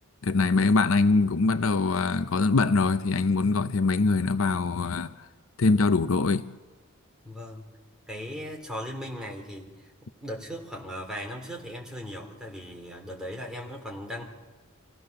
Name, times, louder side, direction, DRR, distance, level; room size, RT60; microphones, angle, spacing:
voice 1, 0.2-5.1 5.6-6.4, left 3 dB, 65° left, 0.6 m, -23 dB
voice 2, 7.2-7.6 8.1-14.2, equal, 5° right, 3.2 m, -38 dB
26.5 x 15.5 x 6.6 m
head